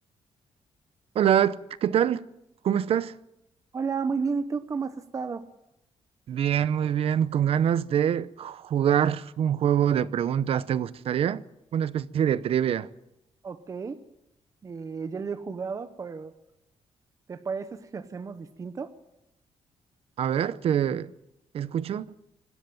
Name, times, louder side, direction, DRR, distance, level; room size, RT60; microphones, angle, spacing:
voice 1, 1.1-2.3 2.6-3.1 6.3-11.4 11.7-12.9 20.2-21.1 21.5-22.1, right 9 dB, 60° right, 0.8 m, -25 dB
voice 2, 3.7-5.5 13.4-14.0 14.6-16.3 17.3-18.9, right 5 dB, 30° right, 0.9 m, -32 dB
25.0 x 12.5 x 9.1 m
cardioid pair, 155°, 11 cm